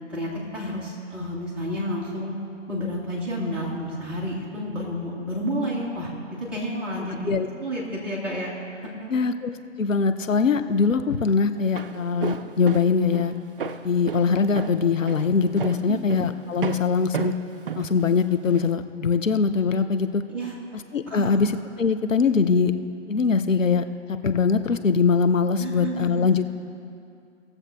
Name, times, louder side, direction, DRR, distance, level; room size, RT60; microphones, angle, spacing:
voice 1, 0.1-2.3 2.7-7.3 7.6-9.2 15.9-16.0 20.3-20.6 21.1-21.3 25.6-26.2, equal, 5° right, -7 dB, 0.6 m, -30 dB
voice 2, 9.1-9.5 9.8-13.3 13.8-17.3 17.7-20.2 20.9-21.5 21.8-22.7 23.1-23.8 24.2-26.4, left 5 dB, 85° left, 9 dB, 0.8 m, -22 dB
Walk footsteps, 11.5-18.7, right 7 dB, 45° right, 0.5 m, -34 dB
18.5 x 7.2 x 3.4 m, 2.5 s
figure-of-eight pair, 140°, 38 cm